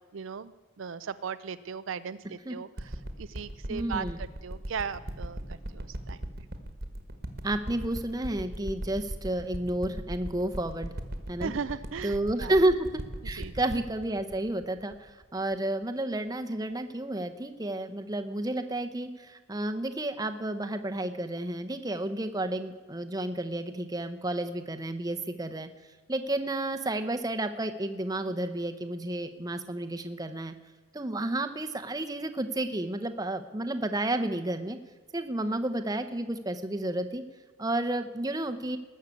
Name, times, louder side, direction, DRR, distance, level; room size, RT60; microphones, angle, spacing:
voice 1, 0.0-6.2 11.4-12.6 13.4-13.6, right 6 dB, 70° right, 13 dB, 0.5 m, -38 dB
sound 1, 2.8-15.5 16.1-16.2, right 1 dB, 50° right, 1.4 m, -38 dB
voice 2, 3.7-4.2 7.4-10.9 11.3-11.5 12.0-12.9 13.2-25.7 26.1-30.5 30.9-34.8 35.1-37.2 37.6-38.8, right 1 dB, 20° right, 8 dB, 0.8 m, -31 dB
19.5 x 6.6 x 8.4 m, 1.4 s
head